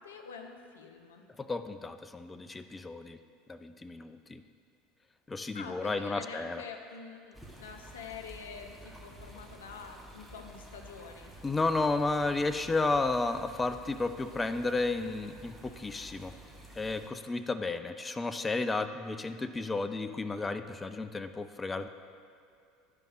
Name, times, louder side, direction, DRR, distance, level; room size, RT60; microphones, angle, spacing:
voice 1, 0.0-1.2 5.5-11.3, left 5 dB, 75° left, 4 dB, 0.6 m, -46 dB
voice 2, 1.4-3.2 3.5-4.4 5.3-6.6 11.4-16.3 16.8-21.9, left 3 dB, 15° left, 10 dB, 0.3 m, -32 dB
sound 1, 7.3-17.1, right 1 dB, ahead, 1.1 m, -51 dB
10.5 x 5.1 x 2.5 m, 2.5 s
figure-of-eight pair, 70°, 0 cm